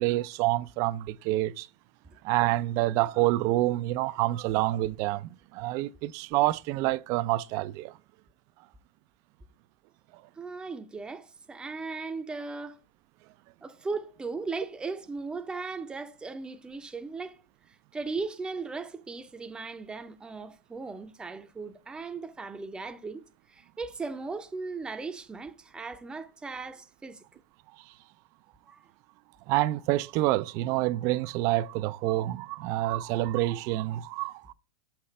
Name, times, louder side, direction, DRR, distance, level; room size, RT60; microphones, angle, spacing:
voice 1, 0.0-1.7 2.2-8.0 29.5-34.5, right 16 dB, 45° right, 0.4 m, -27 dB
voice 2, 10.4-12.8 13.6-17.4 17.7-23.2 23.5-27.4 28.7-28.8, right 4 dB, 10° right, 0.6 m, -37 dB
5.8 x 5.6 x 3.2 m
hypercardioid pair, 105°, 7 cm